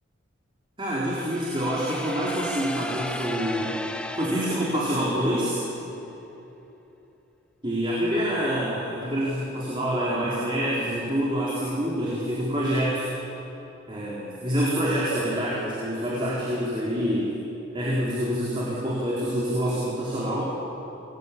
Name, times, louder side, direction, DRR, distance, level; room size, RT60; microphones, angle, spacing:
voice 1, 0.8-3.8 4.2-5.6 7.6-13.1 13.9-17.4 17.7-20.5, equal, 25° right, -6 dB, 4.1 m, -26 dB
sound 1, 1.1-5.8, left 1 dB, 5° left, 0.9 m, -36 dB
26.0 x 20.5 x 8.6 m, 3.0 s
head